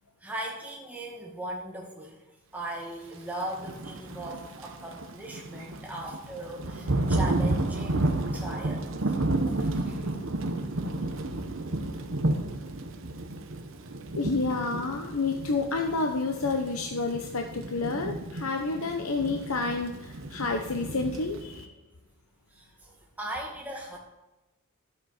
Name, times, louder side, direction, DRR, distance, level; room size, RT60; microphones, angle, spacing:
voice 1, 0.2-9.2 9.5-10.2 22.5-24.0, right 1 dB, 5° right, -2 dB, 2.0 m, -39 dB
Thunder / Rain, 3.5-21.6, right 2 dB, 60° right, 1.0 m, -32 dB
voice 2, 14.1-21.7, left 3 dB, 75° left, 4 dB, 0.8 m, -29 dB
12.0 x 8.2 x 4.3 m, 1.0 s
head